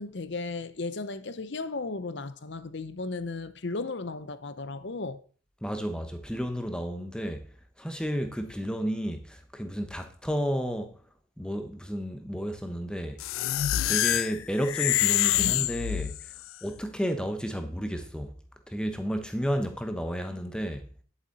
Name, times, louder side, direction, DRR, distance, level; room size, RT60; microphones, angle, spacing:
voice 1, 0.0-5.2, left 3 dB, 55° left, 0.7 m, -35 dB
voice 2, 5.6-7.5 7.8-11.0 11.4-13.2 13.8-16.2 16.6-18.3 18.7-20.9, equal, 5° left, 1.0 m, -32 dB
sound 1, 13.2-16.4, left 14 dB, 80° left, 0.3 m, -26 dB
10.5 x 8.3 x 4.1 m
head